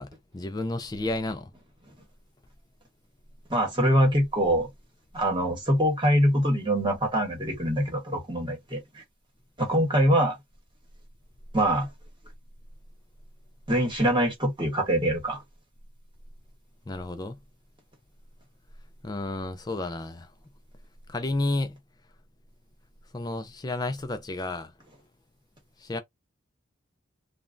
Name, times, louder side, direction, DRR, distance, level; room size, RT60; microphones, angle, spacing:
voice 1, 0.0-1.5 16.9-17.4 19.0-20.3 21.1-21.8 23.1-24.7 25.8-26.0, left 2 dB, 20° left, 0.3 m, -31 dB
voice 2, 3.5-4.7 5.1-9.0 9.6-10.4 11.5-11.9 13.7-15.4, equal, 25° right, 1.0 m, -24 dB
3.1 x 2.2 x 2.5 m
head